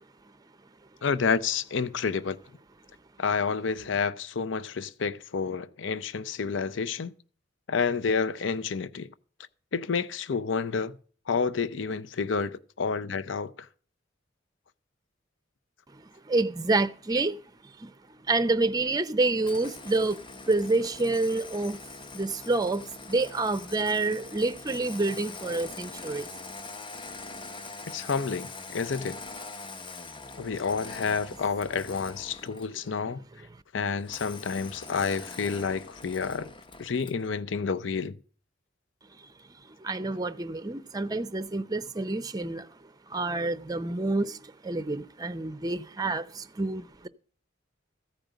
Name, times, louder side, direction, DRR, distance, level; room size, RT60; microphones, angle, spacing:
voice 1, 1.0-2.4 3.2-7.1 7.7-9.1 9.7-10.9 11.3-13.5 27.9-29.2 30.4-33.2 33.7-36.5 36.8-38.2, left 5 dB, 70° left, 0.6 m, -29 dB
voice 2, 16.3-17.4 17.8-17.9 18.3-21.8 22.1-26.3 39.8-42.7 43.1-47.1, right 3 dB, 20° right, 0.6 m, -28 dB
Engine starting, 19.4-32.8 34.0-37.3, left 3 dB, 25° left, 0.8 m, -43 dB
14.5 x 5.2 x 9.0 m
head